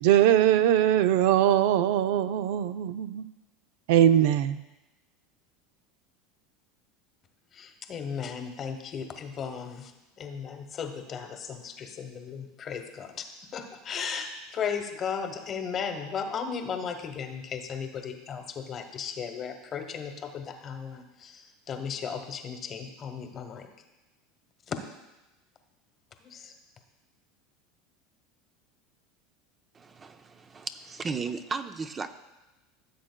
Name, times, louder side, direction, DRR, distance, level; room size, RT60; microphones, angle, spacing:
voice 1, 0.0-3.2 3.9-4.6, right 11 dB, 75° right, 0.4 m, -21 dB
voice 2, 7.5-9.9 10.2-13.2 13.5-23.7 24.7-24.8 26.2-26.5, left 6 dB, 35° left, 1.0 m, -36 dB
voice 3, 29.7-32.1, right 4 dB, 25° right, 0.6 m, -35 dB
15.0 x 7.5 x 2.2 m
supercardioid pair, 115°, 0 cm